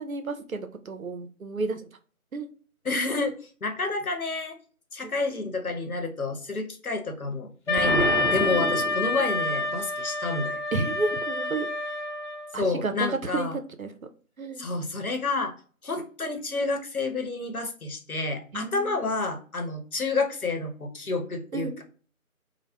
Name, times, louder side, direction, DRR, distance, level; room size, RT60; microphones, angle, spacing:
voice 1, 0.0-1.9 2.3-2.5 5.0-5.1 10.7-11.7 12.5-13.5 13.8-13.9 14.4-14.7 18.5-19.0 21.5-21.8, right 3 dB, 70° right, 8 dB, 0.6 m, -31 dB
voice 2, 2.8-4.6 4.9-10.6 12.5-13.6 14.6-15.5 15.8-21.8, left 3 dB, 75° left, 4 dB, 0.9 m, -29 dB
Wind instrument woodwind instrument, 7.7-12.6, left 2 dB, 55° left, 0.5 m, -28 dB
Explosion, 7.8-9.6, right 2 dB, ahead, 0.4 m, -30 dB
4.4 x 2.1 x 2.2 m, 0.41 s
figure-of-eight pair, 165°, 43 cm